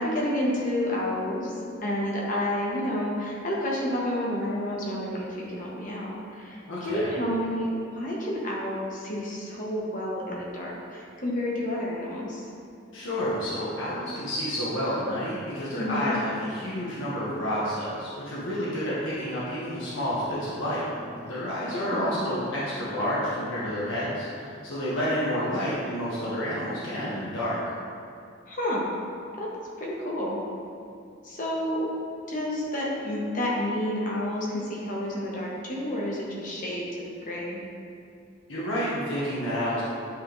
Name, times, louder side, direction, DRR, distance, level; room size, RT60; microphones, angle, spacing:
voice 1, 0.0-1.5 1.8-12.4 15.8-16.1 21.7-22.3 28.5-28.8 29.4-29.5 29.8-30.4 31.2-31.9 32.3-37.6, left 1 dB, 40° left, -4 dB, 1.1 m, -30 dB
voice 2, 6.7-7.1 12.9-20.8 21.1-27.6 38.5-39.8, equal, 75° left, -8 dB, 1.2 m, -29 dB
8.5 x 3.4 x 3.9 m, 2.5 s
head